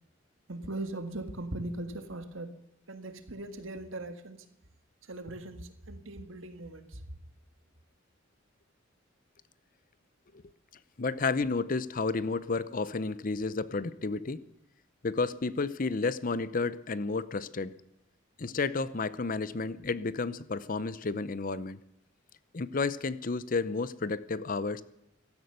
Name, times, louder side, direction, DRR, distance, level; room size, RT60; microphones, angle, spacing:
voice 1, 0.5-2.5 2.9-4.5 5.1-7.0, right 2 dB, 75° right, 1.7 m, -39 dB
voice 2, 11.0-14.4 15.0-17.7 18.4-21.8 22.5-24.8, left 3 dB, 45° left, 0.7 m, -31 dB
16.0 x 13.0 x 6.8 m
head